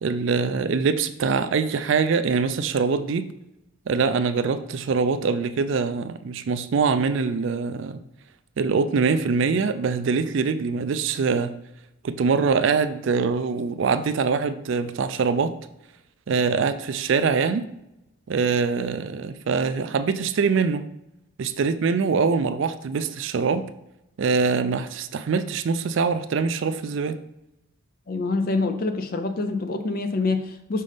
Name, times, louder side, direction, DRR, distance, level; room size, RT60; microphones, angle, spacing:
voice 1, 0.0-3.3 3.9-8.0 8.6-11.6 12.0-15.5 16.3-17.7 18.3-20.8 21.4-23.7 24.2-27.2, right 5 dB, 55° right, 12 dB, 0.3 m, -23 dB
voice 2, 28.1-30.8, left 3 dB, 40° left, 7 dB, 0.5 m, -26 dB
5.5 x 5.1 x 3.3 m, 0.86 s
head